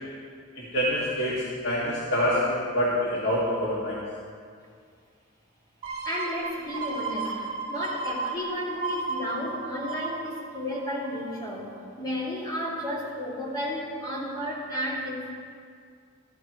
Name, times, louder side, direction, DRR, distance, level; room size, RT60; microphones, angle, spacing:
voice 1, 0.6-4.0, equal, 75° left, -7 dB, 2.1 m, -26 dB
sound 1, 5.8-11.3 11.8-11.9, right 3 dB, 30° right, 2.9 m, -34 dB
voice 2, 6.0-7.4 7.7-11.7 12.0-15.3, equal, 20° left, -5 dB, 2.4 m, -32 dB
14.5 x 12.5 x 3.1 m, 2.1 s
head